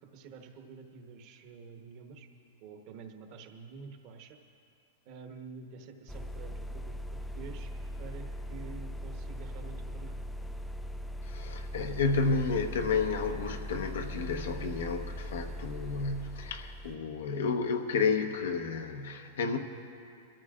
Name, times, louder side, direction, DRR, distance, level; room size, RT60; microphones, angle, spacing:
voice 1, 0.0-2.3 2.6-4.4 5.1-7.7 8.0-10.2, right 5 dB, 45° right, 5 dB, 1.1 m, -48 dB
sound 1, 6.1-17.0, equal, 5° left, 0.3 m, -40 dB
voice 2, 11.2-19.6, left 4 dB, 85° left, 5 dB, 1.0 m, -31 dB
24.5 x 13.5 x 2.5 m, 2.5 s
supercardioid pair, 150°, 0 cm